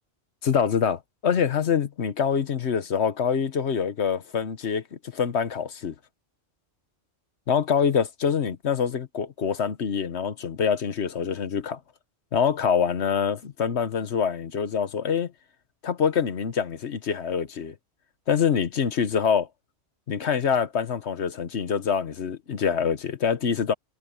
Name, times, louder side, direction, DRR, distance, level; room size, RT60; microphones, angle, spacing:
voice 1, 0.4-5.9 7.5-11.8 12.3-15.3 15.8-17.7 18.3-19.5 20.1-23.7, left 7 dB, 65° left, 1.3 m, -25 dB
omnidirectional pair, 1.2 m